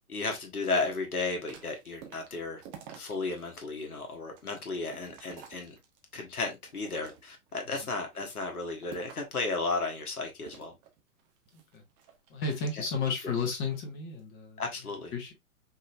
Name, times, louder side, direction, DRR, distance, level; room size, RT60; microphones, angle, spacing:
voice 1, 0.1-2.6 3.0-5.7 6.1-10.7 13.2-13.3 14.6-15.1, left 3 dB, 75° left, 1.4 m, -34 dB
sound 1, 1.2-3.4 3.8-6.2 6.7-7.5 8.0-9.4 10.4-13.1 13.5-13.9, right 8 dB, 20° right, 0.7 m, -51 dB
voice 2, 11.5-11.8 12.3-14.6 15.1-15.3, left 4 dB, 25° left, 1.5 m, -33 dB
5.4 x 3.3 x 2.4 m
figure-of-eight pair, 115°, 45 cm